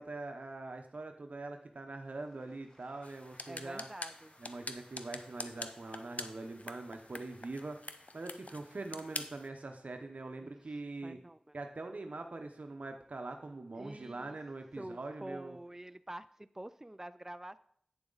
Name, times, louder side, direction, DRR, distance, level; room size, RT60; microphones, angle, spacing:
voice 1, 0.0-3.9 4.4-11.2 11.5-15.6, right 2 dB, 75° right, 5 dB, 0.8 m, -43 dB
sound 1, 1.9-9.9, equal, 30° left, 1.9 m, -64 dB
sound 2, 3.0-9.5, left 3 dB, 65° left, 0.6 m, -46 dB
voice 2, 3.5-4.3 10.4-10.5 11.0-11.5 13.8-14.4 14.8-17.6, right 1 dB, 15° right, 13 dB, 0.4 m, -47 dB
9.0 x 7.1 x 3.9 m, 0.65 s
wide cardioid pair, 50°, 3 cm